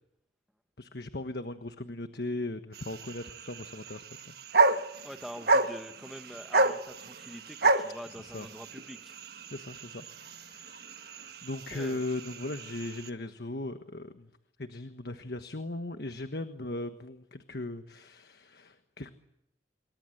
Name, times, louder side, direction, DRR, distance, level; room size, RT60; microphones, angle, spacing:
voice 1, 0.8-5.1 8.2-8.5 9.5-14.3 14.6-19.1, left 2 dB, 60° left, 8 dB, 1.3 m, -38 dB
sound 1, 2.7-13.1, right 3 dB, 60° right, 1.3 m, -31 dB
voice 2, 5.0-9.1 11.7-12.1, equal, ahead, 7 dB, 1.3 m, -45 dB
27.5 x 24.0 x 8.0 m, 0.83 s
head